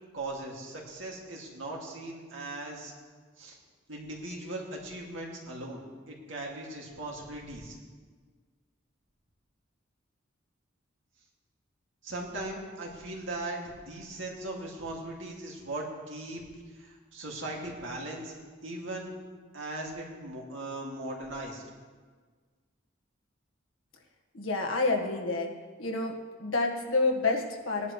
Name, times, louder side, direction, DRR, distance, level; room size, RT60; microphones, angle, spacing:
voice 1, 0.1-2.9 3.4-3.6 3.9-5.8 6.1-7.8 12.0-16.4 16.7-18.3 18.6-19.1 19.5-21.6, right 2 dB, 70° right, -2 dB, 2.4 m, -39 dB
voice 2, 24.3-25.5 25.8-27.9, left 3 dB, 85° left, 1 dB, 1.6 m, -29 dB
19.0 x 11.0 x 3.2 m, 1.5 s
head